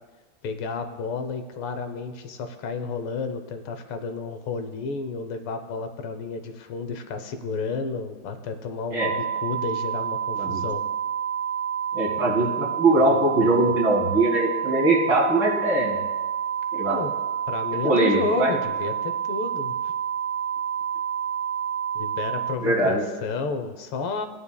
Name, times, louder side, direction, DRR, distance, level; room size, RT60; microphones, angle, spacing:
voice 1, 0.4-10.8 16.7-17.1 17.5-19.9 21.9-24.3, left 4 dB, 85° left, 8 dB, 1.7 m, -31 dB
sound 1, 9.0-22.6, right 8 dB, 80° right, 1.4 m, -28 dB
voice 2, 11.9-16.0 16.7-17.0 17.8-18.6 22.6-23.0, right 2 dB, 60° right, -3 dB, 2.9 m, -21 dB
17.5 x 9.6 x 2.3 m, 1.2 s
omnidirectional pair, 2.3 m